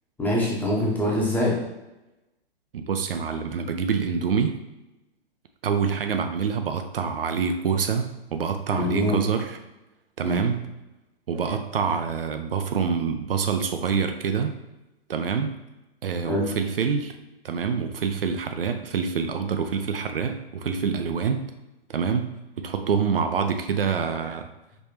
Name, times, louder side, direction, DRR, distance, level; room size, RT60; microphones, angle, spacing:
voice 1, 0.2-1.5 8.7-9.2 10.2-10.4 16.2-16.5, left 1 dB, 5° left, -5 dB, 0.8 m, -24 dB
voice 2, 2.7-4.6 5.6-9.6 10.2-10.7 11.3-14.5 15.1-15.6 16.0-17.1 17.4-21.4 21.9-22.3 22.6-24.5, right 6 dB, 65° right, 7 dB, 0.5 m, -26 dB
5.3 x 3.1 x 3.0 m, 0.99 s
figure-of-eight pair, 115°, 31 cm